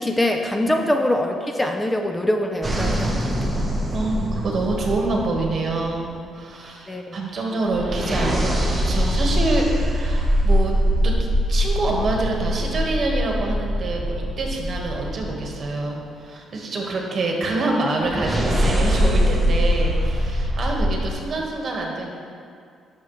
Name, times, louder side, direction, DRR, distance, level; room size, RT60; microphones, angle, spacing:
voice 1, 0.0-3.7 6.9-7.2, left 1 dB, 15° left, 4 dB, 0.5 m, -24 dB
sound 1, 2.6-6.1 7.7-15.7 18.0-21.1, equal, 20° right, 1.1 m, -23 dB
voice 2, 3.9-10.7 11.0-22.1, right 2 dB, 50° right, 0 dB, 1.5 m, -26 dB
11.0 x 6.5 x 3.2 m, 2.3 s
cardioid pair, 90°, 0 cm